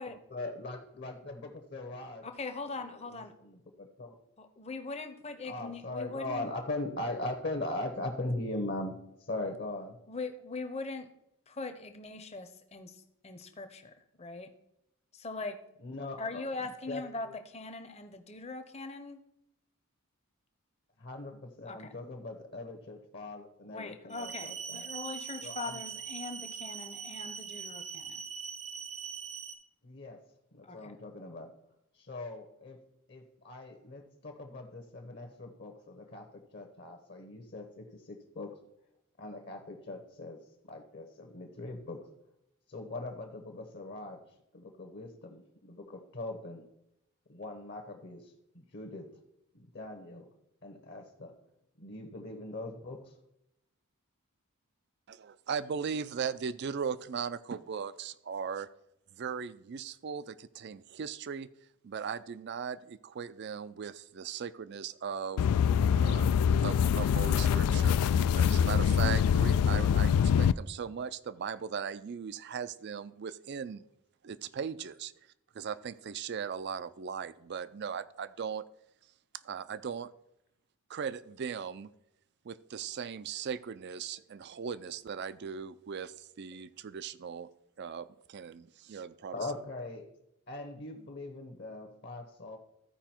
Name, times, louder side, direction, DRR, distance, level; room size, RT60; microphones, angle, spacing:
voice 1, 0.3-2.2 2.9-4.1 5.4-10.0 15.8-16.4 16.9-17.3 21.0-24.8 25.4-25.8 29.8-30.2 30.5-31.5 32.0-32.8 33.1-38.5 39.2-40.4 40.7-42.1 42.7-44.2 44.5-46.6 47.3-49.1 49.5-50.3 50.6-51.3 51.8-53.1 89.3-90.1 90.5-92.6, left 2 dB, 50° left, 5 dB, 1.0 m, -40 dB
voice 2, 2.2-3.3 4.4-6.5 10.1-11.1 11.5-13.0 13.2-14.5 15.1-15.6 16.2-19.2 21.7-21.9 23.7-28.2 30.6-31.0, left 3 dB, 30° left, 8 dB, 0.8 m, -41 dB
sound 1, 24.1-29.5, right 7 dB, 85° right, 1.0 m, -42 dB
voice 3, 55.1-58.7 59.1-61.5 61.8-65.4 66.0-66.3 66.6-73.8 74.2-75.1 75.5-78.6 79.4-80.1 80.9-81.9 82.4-87.5 87.8-89.4, right 6 dB, 50° right, 16 dB, 0.4 m, -38 dB
sound 2, 65.4-70.5, left 7 dB, 85° left, 0.3 m, -25 dB
14.0 x 4.9 x 4.4 m, 0.81 s
head